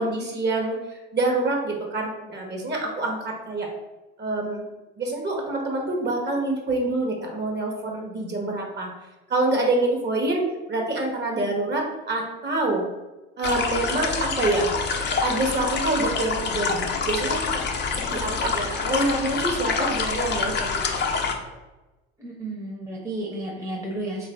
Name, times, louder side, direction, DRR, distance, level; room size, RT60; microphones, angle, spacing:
voice 1, 0.0-3.7 4.2-4.6 5.0-8.9 9.3-10.4 10.7-12.8 13.4-14.7 15.2-17.6 18.1-21.6, right 2 dB, 35° right, 0 dB, 1.1 m, -26 dB
sound 1, 13.4-21.3, left 5 dB, 35° left, 0.6 m, -26 dB
voice 2, 22.2-24.3, right 1 dB, 10° right, -3 dB, 0.9 m, -32 dB
3.4 x 2.5 x 3.3 m, 1.1 s
hypercardioid pair, 75°, 32 cm